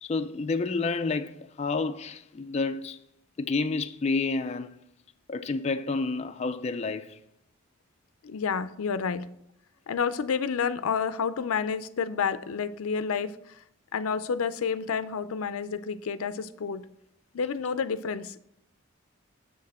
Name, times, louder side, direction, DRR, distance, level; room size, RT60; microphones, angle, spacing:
voice 1, 0.0-3.0 3.4-4.8 5.3-7.2 17.8-17.9, left 3 dB, 30° left, 0.3 m, -29 dB
voice 2, 8.2-9.3 9.9-13.6 13.9-16.8 17.3-18.4, left 6 dB, 90° left, 0.5 m, -30 dB
7.0 x 6.6 x 4.2 m
head